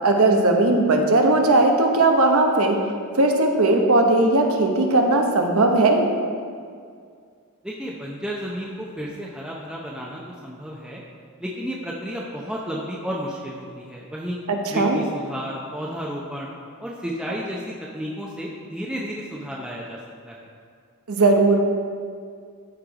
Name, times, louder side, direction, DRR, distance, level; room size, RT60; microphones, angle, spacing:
voice 1, 0.0-2.8 3.1-6.1 14.5-15.0 21.1-21.6, right 2 dB, 80° right, 3 dB, 1.1 m, -18 dB
voice 2, 7.6-11.0 11.4-14.4 14.7-16.5 16.8-20.0 20.3-20.5, equal, 5° right, -5 dB, 0.7 m, -32 dB
13.0 x 4.5 x 4.9 m, 2.1 s
head